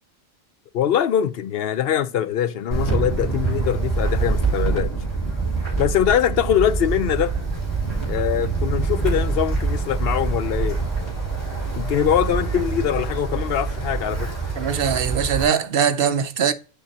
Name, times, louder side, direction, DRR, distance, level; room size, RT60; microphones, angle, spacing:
voice 1, 0.7-4.9 5.8-7.3 8.1-10.8 11.7-14.3, left 9 dB, 70° left, 0.8 m, -22 dB
Wind, 2.7-15.4, right 4 dB, 20° left, 3.8 m, -25 dB
voice 2, 14.6-16.5, right 8 dB, 65° right, 0.9 m, -21 dB
7.2 x 5.3 x 4.0 m
omnidirectional pair, 1.1 m